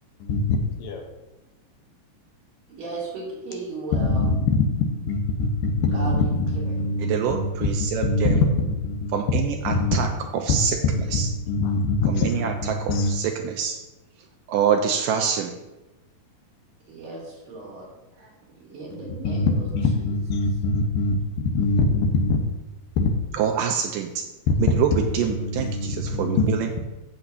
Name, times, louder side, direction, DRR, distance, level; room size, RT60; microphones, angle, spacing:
voice 1, 0.2-1.1 3.9-9.2 9.5-10.3 10.9-13.1 18.9-22.4 23.0-23.1 24.5-24.6 24.9-26.8, left 3 dB, 75° left, 3 dB, 2.7 m, -24 dB
voice 2, 2.7-4.2 5.9-6.7 16.9-17.9 18.2-19.7 20.0-20.1, right 3 dB, 65° right, -5 dB, 4.4 m, -36 dB
voice 3, 7.0-8.4 9.1-10.1 10.3-10.8 11.1-11.3 12.1-13.8 14.5-15.5 23.3-24.2 24.6-26.7, right 8 dB, 80° right, 4 dB, 2.1 m, -25 dB
14.5 x 6.9 x 2.8 m, 1.0 s
omnidirectional pair, 4.1 m